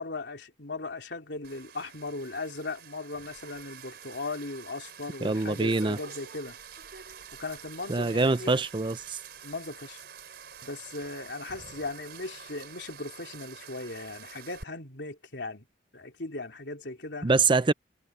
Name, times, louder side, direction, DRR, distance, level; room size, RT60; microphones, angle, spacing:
voice 1, 0.0-6.6 7.4-8.6 9.4-10.0 10.6-15.7 15.9-17.3, left 3 dB, 75° left, 3.7 m, -38 dB
sound 1, 1.4-14.6, right 7 dB, 65° right, 4.4 m, -47 dB
voice 2, 5.2-6.0 7.9-9.2 17.2-17.7, right 3 dB, 25° right, 0.6 m, -24 dB
head